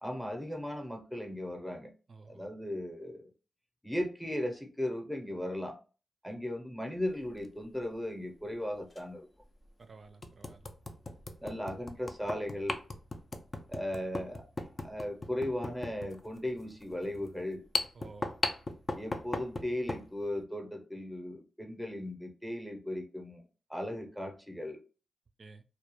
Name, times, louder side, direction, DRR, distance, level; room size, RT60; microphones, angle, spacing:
voice 1, 0.0-1.9 2.3-3.3 3.8-5.8 6.2-9.3 11.4-12.8 13.7-14.4 14.8-17.6 18.9-23.4 23.7-24.8, left 1 dB, ahead, 0.7 m, -37 dB
voice 2, 2.1-2.5 6.3-6.4 9.8-10.7 17.9-18.4 25.4-25.6, right 4 dB, 55° right, 0.3 m, -52 dB
sound 1, 7.2-7.5 8.9-9.0 9.6-9.7 10.2-20.1, left 2 dB, 40° left, 0.4 m, -38 dB
2.3 x 2.1 x 2.9 m
cardioid pair, 60°, 0 cm